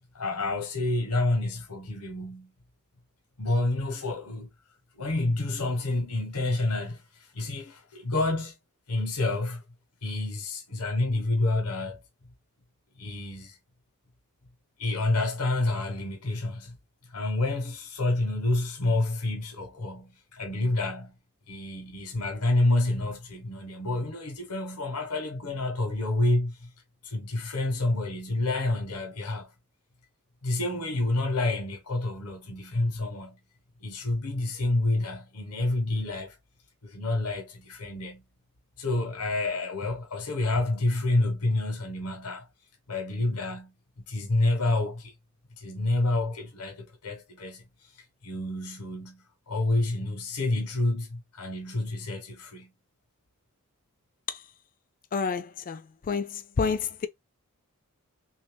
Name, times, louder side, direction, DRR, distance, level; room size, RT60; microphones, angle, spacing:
voice 1, 0.1-2.5 3.4-4.5 4.9-7.0 7.3-8.6 8.9-9.6 10.0-12.0 13.0-13.6 14.8-16.8 17.1-21.1 21.5-26.7 27.0-29.5 30.4-33.4 33.8-36.3 36.8-38.2 38.8-42.5 42.9-45.1 45.6-47.6 48.2-52.7, left 2 dB, 90° left, 1.2 m, -28 dB
voice 2, 55.1-55.8 56.1-57.1, left 5 dB, 40° left, 0.4 m, -29 dB
3.2 x 2.7 x 3.4 m
head